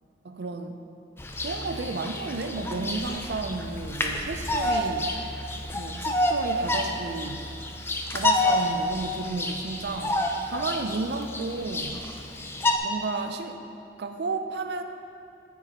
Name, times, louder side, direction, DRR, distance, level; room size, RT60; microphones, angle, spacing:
voice 1, 0.2-0.9 1.4-5.1 5.7-7.4 8.1-12.0 12.8-13.6 14.0-14.8, right 3 dB, 65° right, 6 dB, 0.4 m, -32 dB
Bird vocalization bird call bird song, 1.2-12.8, left 1 dB, 15° left, 0.4 m, -29 dB
9.3 x 7.5 x 2.9 m, 2.6 s
head